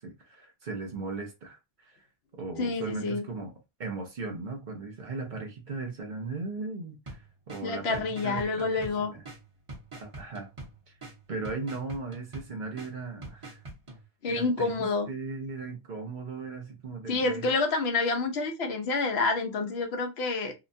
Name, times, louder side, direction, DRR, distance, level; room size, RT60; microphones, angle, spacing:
voice 1, 0.0-2.0 2.3-3.5 3.8-9.2 10.0-10.5 10.9-11.0 11.3-13.6 14.3-17.5, right 3 dB, 55° right, 0.8 m, -37 dB
voice 2, 2.6-3.2 7.6-9.1 14.2-15.1 17.1-20.5, left 3 dB, 80° left, 0.9 m, -28 dB
sound 1, 7.1-14.0, right 2 dB, 30° right, 1.0 m, -46 dB
2.8 x 2.2 x 2.6 m
omnidirectional pair, 1.0 m